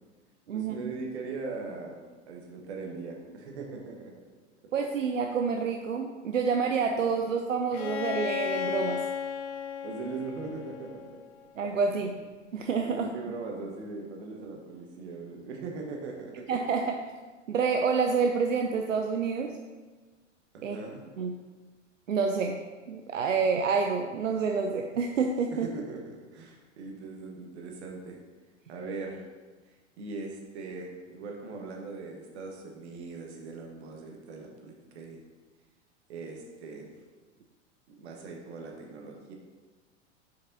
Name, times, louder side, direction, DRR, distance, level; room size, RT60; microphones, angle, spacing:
voice 1, 0.5-4.1 9.8-11.1 11.9-12.2 12.8-16.5 20.5-21.0 25.6-26.0 26.3-28.2 28.7-29.2 29.7-35.2 36.1-36.9 37.9-39.3, right 3 dB, 60° right, 1 dB, 1.3 m, -40 dB
voice 2, 4.7-9.0 11.6-12.1 12.5-13.1 16.5-17.0 17.5-19.5 20.6-20.8 21.2-21.3 22.1-22.6 22.9-25.7, right 5 dB, 85° right, 4 dB, 0.5 m, -28 dB
Bowed string instrument, 7.7-11.5, left 8 dB, 35° left, 0.4 m, -35 dB
6.8 x 5.1 x 2.7 m, 1.3 s
figure-of-eight pair, 95°, 37 cm